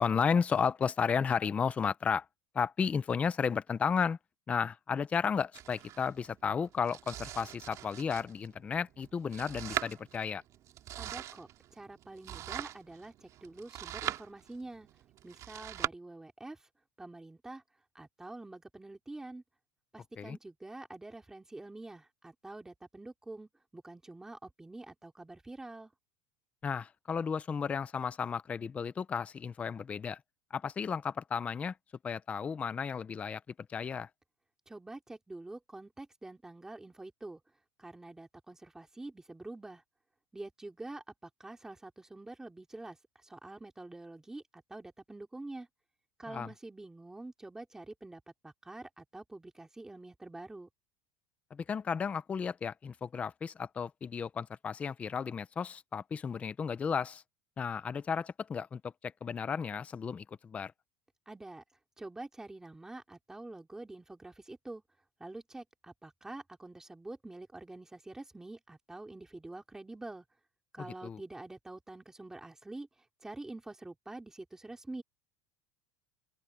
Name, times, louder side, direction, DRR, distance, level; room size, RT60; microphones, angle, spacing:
voice 1, 0.0-2.3 2.5-4.2 4.5-10.4 20.2-20.4 26.6-30.2 30.5-31.7 32.0-33.4 33.7-34.1 46.3-46.5 51.5-57.2 57.6-60.7 70.8-71.2, left 6 dB, 15° left, 0.5 m, -33 dB
Domestic sounds home sounds, 5.5-15.9, right 12 dB, 35° right, 2.6 m, -42 dB
voice 2, 11.0-11.5 11.7-14.9 15.2-16.6 17.0-17.6 17.9-19.4 19.9-25.9 34.7-37.4 37.8-39.8 40.3-43.0 43.2-45.7 46.2-50.7 61.3-61.6 62.0-64.8 65.2-70.2 70.7-72.9 73.2-75.0, right 2 dB, 5° right, 2.9 m, -46 dB
open air
cardioid pair, 175°, 10 cm